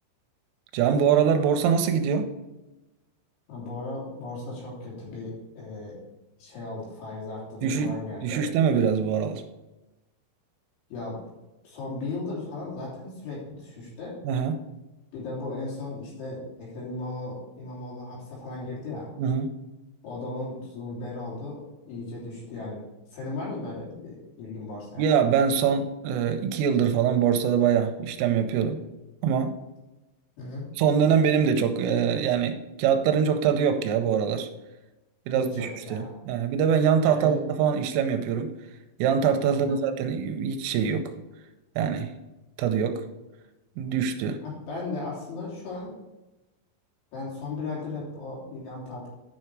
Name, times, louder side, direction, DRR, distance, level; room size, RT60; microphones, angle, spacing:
voice 1, 0.7-2.3 7.6-9.4 14.2-14.6 19.2-19.5 25.0-28.8 29.2-29.6 30.8-34.5 35.3-38.5 39.0-41.1 41.8-42.1 42.6-43.0 43.8-44.4, right 7 dB, 80° right, 7 dB, 3.2 m, -24 dB
voice 2, 3.5-6.0 6.4-8.4 10.9-11.1 11.6-14.1 15.1-19.1 20.0-21.6 21.9-22.8 23.1-25.1 30.4-30.7 35.3-36.2 37.0-37.4 39.5-39.8 43.9-44.0 44.4-45.9 47.1-49.1, left 3 dB, 65° left, -5 dB, 5.4 m, -36 dB
10.0 x 5.6 x 4.7 m, 1.0 s
omnidirectional pair, 5.9 m